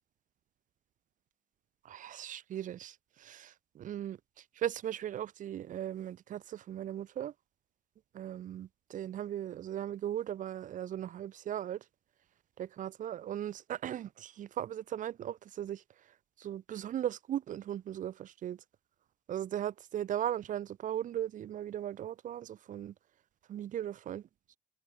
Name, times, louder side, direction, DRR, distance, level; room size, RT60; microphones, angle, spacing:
voice 1, 1.8-4.2 4.6-7.3 8.1-11.8 12.6-15.8 16.4-18.6 19.3-22.9 23.5-24.2, right 11 dB, 50° right, 0.7 m, -38 dB
cardioid pair, 110°, 17 cm